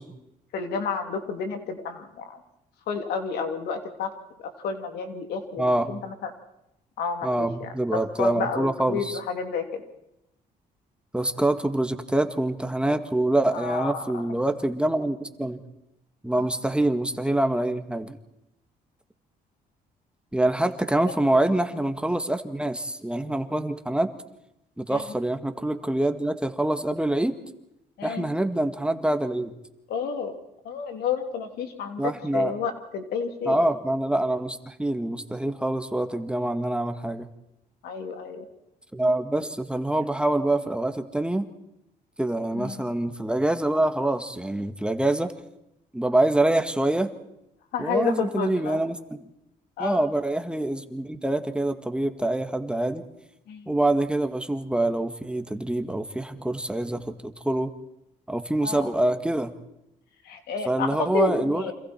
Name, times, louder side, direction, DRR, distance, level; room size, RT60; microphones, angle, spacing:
voice 1, 0.5-2.4 2.9-4.1 4.4-6.3 7.0-7.7 8.2-9.8 13.5-14.2 16.3-16.5 21.5-21.6 24.9-25.1 28.0-28.2 29.9-30.3 30.6-33.6 37.8-38.4 42.5-42.8 47.7-48.8 49.8-50.0 53.5-53.7 58.6-58.9 60.2-61.7, left 5 dB, 85° left, 5 dB, 3.1 m, -31 dB
voice 2, 5.6-6.0 7.2-9.2 11.1-15.6 16.2-18.2 20.3-24.1 24.8-27.4 28.0-29.5 32.0-32.5 33.5-37.3 38.9-41.5 42.2-45.3 45.9-47.1 47.8-49.2 49.8-53.1 53.7-57.7 58.3-59.5 60.7-61.7, right 1 dB, 5° right, 8 dB, 1.7 m, -25 dB
28.5 x 26.0 x 4.5 m, 0.85 s
cardioid pair, 95°, 16 cm